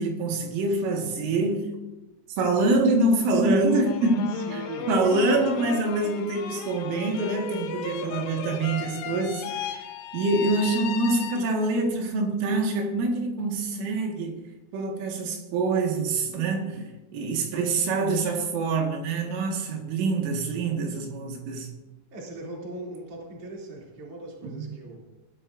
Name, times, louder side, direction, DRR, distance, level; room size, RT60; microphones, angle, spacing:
voice 1, 0.0-1.7 2.4-9.9 10.1-14.4 14.7-16.8 17.1-21.7 24.4-24.7, right 2 dB, 75° right, 2 dB, 4.2 m, -25 dB
sound 1, 3.6-11.8, left 7 dB, 80° left, 3.4 m, -35 dB
voice 2, 4.3-4.9 5.3-5.5 14.7-14.8 22.1-25.0, right 2 dB, 35° right, -3 dB, 3.3 m, -40 dB
20.0 x 12.5 x 2.6 m, 1.0 s
omnidirectional pair, 5.9 m